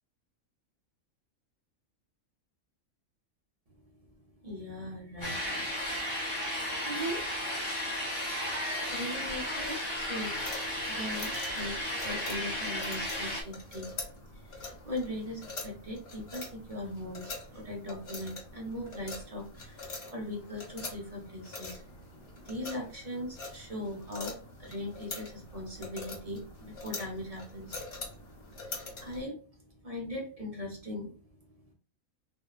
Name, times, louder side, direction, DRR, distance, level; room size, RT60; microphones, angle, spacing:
voice 1, 4.4-5.5 6.0-7.3 7.8-8.0 8.9-10.5 10.8-13.9 14.3-21.8 22.4-28.0 28.6-28.7 29.0-29.4 29.8-31.2, left 1 dB, 35° right, -1 dB, 0.7 m, -40 dB
sound 1, 5.2-13.4, left 1 dB, 25° left, 0.9 m, -34 dB
sound 2, 10.3-29.2, left 3 dB, 55° left, 1.2 m, -44 dB
3.4 x 2.2 x 2.4 m, 0.37 s
omnidirectional pair, 1.4 m